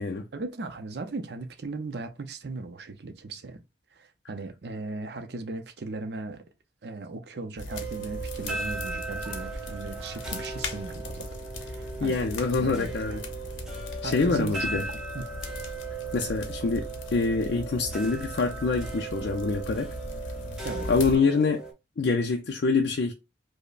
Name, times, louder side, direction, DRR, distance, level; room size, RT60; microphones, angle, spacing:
voice 1, 0.3-3.6 3.9-6.4 6.8-11.3 11.6-12.2 12.6-13.2 14.0-14.8 15.1-15.3 20.6-20.9, right 3 dB, 60° right, 0.5 m, -37 dB
sound 1, 7.6-21.2, left 2 dB, 90° left, 0.7 m, -38 dB
sound 2, 7.7-21.7, right 4 dB, 5° right, 0.7 m, -38 dB
voice 2, 12.0-13.2 14.0-14.9 16.1-19.9 20.9-21.6 22.0-23.1, left 4 dB, 60° left, 0.4 m, -25 dB
5.1 x 2.1 x 2.4 m
head